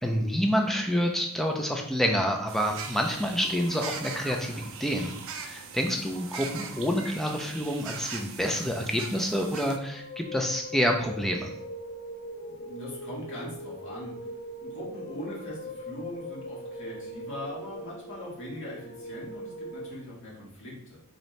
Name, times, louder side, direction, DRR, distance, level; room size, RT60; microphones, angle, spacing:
voice 1, 0.0-11.5, equal, ahead, 2 dB, 0.3 m, -28 dB
sound 1, 2.5-9.8, right 5 dB, 60° right, 0.4 m, -40 dB
sound 2, 9.6-19.9, equal, 90° left, 1.0 m, -41 dB
voice 2, 12.5-14.1 14.6-21.0, left 1 dB, 55° left, -5 dB, 1.4 m, -41 dB
4.0 x 2.6 x 3.1 m, 0.71 s
head